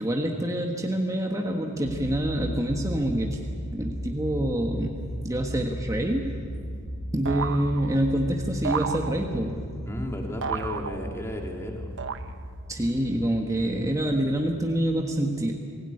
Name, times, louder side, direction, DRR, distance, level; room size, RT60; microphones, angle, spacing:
voice 1, 0.0-3.4 3.7-4.9 5.2-6.4 7.1-9.6 12.7-15.5, right 1 dB, 15° right, 1 dB, 1.5 m, -26 dB
sound 1, 1.8-15.0, equal, 90° left, 5.8 m, -37 dB
sound 2, 7.3-8.2 8.6-9.6 10.4-11.4 12.0-12.7, right 5 dB, 60° right, 0.9 m, -33 dB
voice 2, 9.8-11.9, left 1 dB, 10° left, 1 dB, 2.9 m, -34 dB
24.0 x 17.0 x 9.8 m, 2.2 s
head